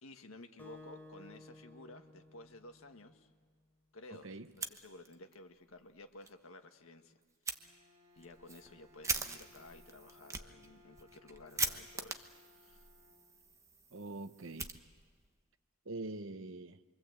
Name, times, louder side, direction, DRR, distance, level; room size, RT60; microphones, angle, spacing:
voice 1, 0.0-3.3 3.9-7.1 8.1-12.3 12.5-12.9, left 2 dB, 75° left, 6 dB, 1.7 m, -54 dB
Acoustic guitar, 0.6-3.4, left 2 dB, 10° left, 3.2 m, -55 dB
Fire, 4.4-5.4 5.7-5.8 6.2-6.3 7.4-7.6 8.2-15.3, right 4 dB, 15° right, 1.1 m, -42 dB
Bowed string instrument, 7.5-13.7, left 2 dB, 35° right, 7.6 m, -64 dB
voice 2, 13.9-14.7 15.9-16.8, right 2 dB, 60° right, 11 dB, 1.0 m, -44 dB
27.0 x 24.0 x 8.1 m, 1.5 s
head